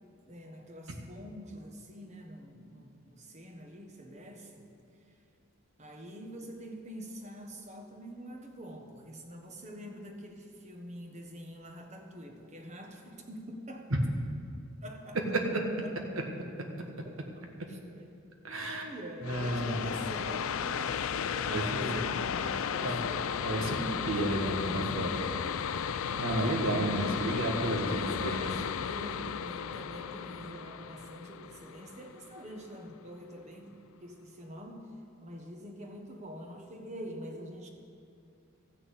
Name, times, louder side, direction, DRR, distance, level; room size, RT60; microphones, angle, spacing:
voice 1, 0.3-4.7 5.8-13.9 14.8-15.4 15.8-15.9 16.9-17.4 17.7-18.1 18.5-23.9 25.0-25.5 27.7-37.7, equal, 35° right, 3 dB, 1.2 m, -45 dB
voice 2, 18.4-18.9 19.2-19.9 21.5-22.0 22.8-23.0 23.4-25.1 26.2-28.4, right 1 dB, 80° right, 2 dB, 1.6 m, -32 dB
sound 1, 19.2-32.6, left 7 dB, 80° left, 0.4 m, -34 dB
14.0 x 6.2 x 8.1 m, 2.4 s
head